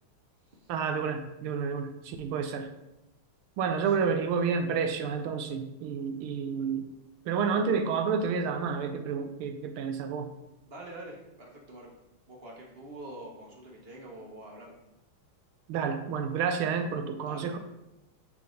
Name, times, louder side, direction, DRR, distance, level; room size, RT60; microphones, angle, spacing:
voice 1, 0.7-2.7 3.6-6.9 7.3-10.3 15.7-17.6, right 6 dB, 90° right, 7 dB, 1.5 m, -30 dB
voice 2, 10.7-11.9 12.3-14.7 17.2-17.6, right 1 dB, 45° right, -1 dB, 0.8 m, -46 dB
8.2 x 3.5 x 3.8 m, 0.91 s
omnidirectional pair, 2.3 m